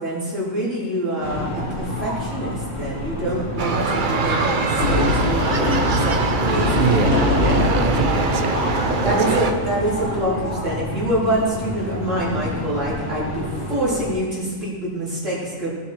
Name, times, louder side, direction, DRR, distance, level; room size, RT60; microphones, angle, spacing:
voice 1, 0.0-7.2 9.0-15.7, right 1 dB, 65° right, -8 dB, 4.4 m, -26 dB
sound 1, 1.2-14.1, left 1 dB, 30° left, 2.8 m, -29 dB
sound 2, 3.6-9.5, right 4 dB, 45° right, 0.9 m, -23 dB
sound 3, 4.8-9.6, left 3 dB, 55° left, 1.3 m, -23 dB
voice 2, 6.4-8.6 9.0-9.4, right 8 dB, 80° right, 11 dB, 0.4 m, -25 dB
18.0 x 7.0 x 4.7 m, 1.5 s
omnidirectional pair, 1.4 m